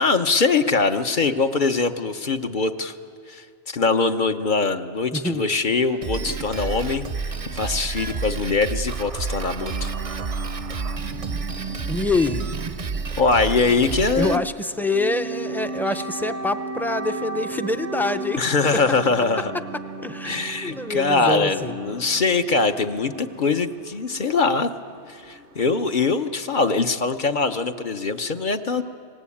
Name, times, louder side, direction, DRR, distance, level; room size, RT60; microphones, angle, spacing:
voice 1, 0.0-3.0 3.3-9.9 13.2-14.4 18.4-19.5 20.2-24.7 25.1-28.8, left 4 dB, 50° left, 7 dB, 1.0 m, -22 dB
voice 2, 5.1-5.5 11.9-12.4 14.2-18.4 20.0-21.7, left 2 dB, ahead, 8 dB, 0.6 m, -25 dB
Drum kit, 6.0-14.3, right 4 dB, 40° right, 0.6 m, -30 dB
sound 1, 9.6-26.8, right 3 dB, 90° right, 1.5 m, -36 dB
29.0 x 20.0 x 8.6 m, 2.4 s
omnidirectional pair, 1.1 m